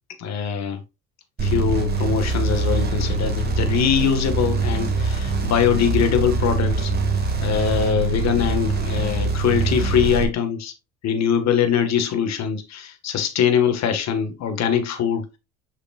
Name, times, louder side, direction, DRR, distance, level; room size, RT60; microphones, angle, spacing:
voice 1, 0.2-0.8 1.4-6.9 7.4-10.7 11.0-15.3, left 8 dB, 55° left, 1.7 m, -22 dB
sound 1, 1.4-10.2, right 3 dB, 30° right, 2.1 m, -23 dB
7.0 x 5.5 x 2.4 m
supercardioid pair, 90°, 33 cm